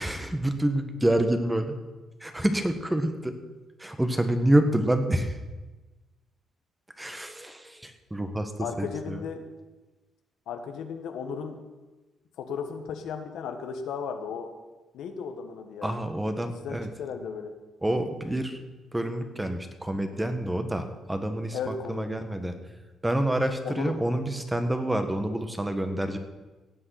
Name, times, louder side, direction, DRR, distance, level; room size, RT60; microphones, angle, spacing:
voice 1, 0.0-1.7 2.2-3.4 3.8-5.4 7.0-8.5 8.8-9.2 15.8-16.9 17.8-18.6 18.9-22.5 23.0-26.2, right 1 dB, 10° right, 7 dB, 1.5 m, -27 dB
voice 2, 8.6-9.4 10.5-11.6 12.4-14.5 14.9-16.0 16.5-17.5 21.5-22.2 23.6-23.9, left 6 dB, 80° left, 6 dB, 1.5 m, -35 dB
16.5 x 7.9 x 5.9 m, 1.2 s
cardioid pair, 90°, 0 cm